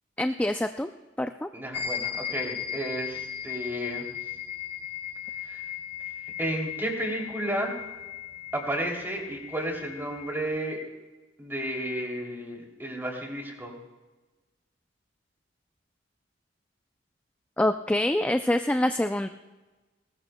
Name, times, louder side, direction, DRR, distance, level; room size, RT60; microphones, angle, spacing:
voice 1, 0.2-0.9 1.2-1.5 17.6-19.3, left 1 dB, 5° left, 7 dB, 0.3 m, -25 dB
voice 2, 1.5-4.0 5.5-5.6 6.4-7.7 8.5-10.8 11.4-13.7, right 1 dB, 10° right, 0 dB, 2.8 m, -32 dB
sound 1, 1.7-10.4, left 10 dB, 80° left, 2.9 m, -37 dB
21.5 x 19.0 x 2.2 m, 1.2 s
head